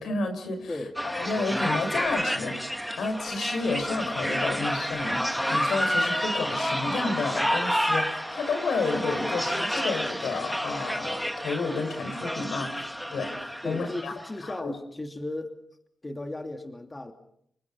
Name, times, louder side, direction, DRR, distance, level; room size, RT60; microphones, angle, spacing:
voice 1, 0.0-0.7 1.0-14.1 14.4-14.6, left 3 dB, 80° left, 7 dB, 5.9 m, -31 dB
sound 1, 1.0-14.3, equal, ahead, 1.7 m, -29 dB
voice 2, 13.6-15.6 16.0-17.1, left 2 dB, 25° left, 4 dB, 2.9 m, -35 dB
29.0 x 25.5 x 5.7 m, 0.70 s
supercardioid pair, 50°, 0 cm